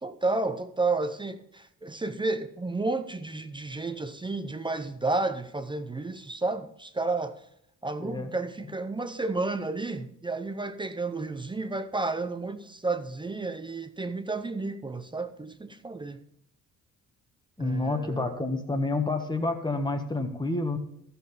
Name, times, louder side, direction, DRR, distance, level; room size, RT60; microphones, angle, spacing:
voice 1, 0.0-7.5 7.8-16.2 17.6-18.4, right 3 dB, 15° right, 0.6 m, -31 dB
voice 2, 8.0-8.3 17.6-20.8, left 2 dB, 15° left, 1.4 m, -29 dB
13.0 x 7.0 x 4.1 m
cardioid pair, 90°, 30 cm